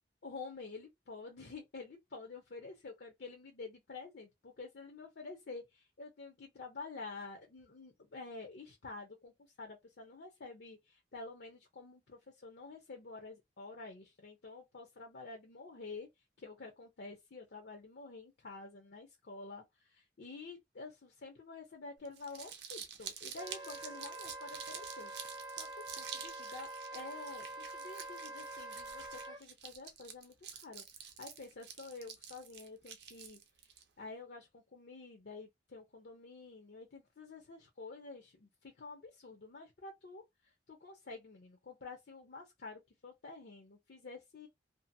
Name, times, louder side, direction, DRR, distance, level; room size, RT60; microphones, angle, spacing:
voice 1, 0.2-9.3 9.6-16.1 16.4-19.6 19.9-25.1 25.5-25.7 26.0-33.4 34.0-40.2 40.7-44.5, left 3 dB, 65° left, 0.6 m, -49 dB
Crumpling crinkling, 22.0-33.8, right 7 dB, 65° right, 0.6 m, -48 dB
Wind instrument woodwind instrument, 23.4-29.4, right 2 dB, 25° right, 0.5 m, -46 dB
2.6 x 2.5 x 2.6 m
head